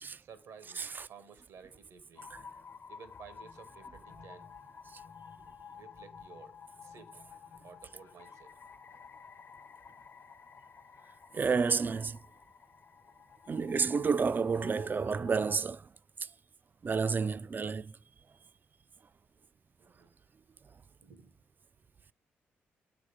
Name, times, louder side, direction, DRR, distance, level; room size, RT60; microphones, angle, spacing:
voice 1, 0.2-2.3 2.9-4.5 5.7-7.1 7.6-8.5 8.9-9.0 19.8-20.1 21.0-21.3, right 6 dB, 70° right, 1.1 m, -54 dB
voice 2, 0.8-1.1 11.3-12.2 13.5-15.8 16.8-17.9, right 5 dB, 35° right, 0.3 m, -30 dB
sound 1, 2.2-15.6, left 6 dB, 40° left, 0.7 m, -52 dB
7.5 x 4.1 x 4.8 m
hypercardioid pair, 45°, 6 cm